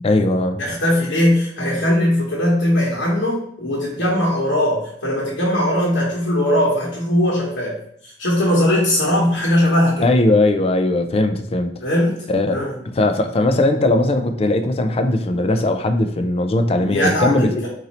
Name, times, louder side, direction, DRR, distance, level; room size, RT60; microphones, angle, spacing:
voice 1, 0.0-0.6 10.0-11.8 12.3-12.6 12.9-17.5, left 2 dB, 30° left, 8 dB, 0.4 m, -18 dB
voice 2, 0.6-7.8 8.0-10.1 11.8-12.2 12.5-12.8 16.8-17.7, left 1 dB, 75° left, -6 dB, 1.1 m, -19 dB
4.1 x 2.7 x 4.1 m, 0.68 s
head